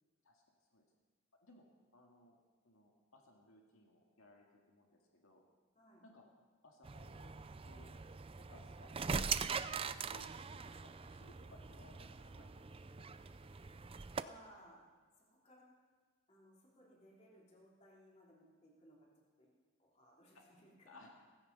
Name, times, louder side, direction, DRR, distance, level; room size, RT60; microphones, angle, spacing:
voice 1, 1.9-2.4 2.6-5.4 6.0-6.2 6.6-7.9 8.4-9.3 10.1-13.1 20.3-20.4 20.9-21.1, left 1 dB, 80° left, 0 dB, 2.0 m, -62 dB
voice 2, 5.7-6.0 14.2-14.9 15.2-15.7 16.3-19.1 19.4-19.5 19.8-21.0, equal, 30° left, -3 dB, 3.4 m, -63 dB
sound 1, 6.8-14.2, right 5 dB, 25° right, 0.4 m, -42 dB
16.5 x 15.5 x 5.5 m, 1.5 s
head